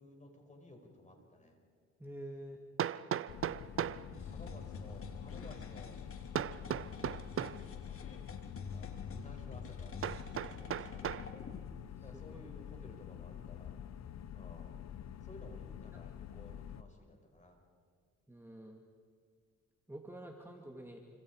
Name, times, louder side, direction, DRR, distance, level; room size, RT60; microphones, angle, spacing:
voice 1, 0.0-1.6 4.2-6.0 6.6-8.2 8.7-11.6 12.0-13.8 14.3-14.8 15.2-17.6, left 1 dB, 25° left, 3 dB, 5.8 m, -56 dB
Hammer, 1.2-1.3 2.8-4.1 6.3-7.6 10.0-11.3, right 10 dB, 45° right, 0.6 m, -37 dB
voice 2, 2.0-2.6 4.0-4.3 12.0-12.1 18.3-18.8 19.9-21.0, right 1 dB, 10° right, 1 dB, 2.3 m, -48 dB
sound 1, 3.3-16.8, left 9 dB, 60° left, 1.0 m, -47 dB
sound 2, 4.1-11.7, left 4 dB, 45° left, 3.1 m, -48 dB
29.0 x 26.0 x 4.9 m, 2.1 s
cardioid pair, 90°, 30 cm